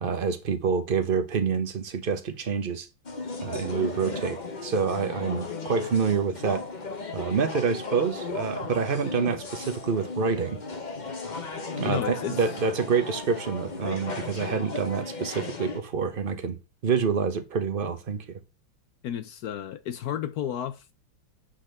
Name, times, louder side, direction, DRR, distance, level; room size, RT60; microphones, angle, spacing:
voice 1, 0.0-2.9 3.4-6.6 7.1-10.6 11.7-16.6 16.8-18.4, right 5 dB, 40° right, 0.8 m, -27 dB
sound 1, 3.0-15.8, left 3 dB, 35° left, 0.7 m, -35 dB
voice 2, 11.8-12.4 19.0-20.9, left 10 dB, 70° left, 0.9 m, -32 dB
8.2 x 4.2 x 6.6 m
omnidirectional pair, 2.2 m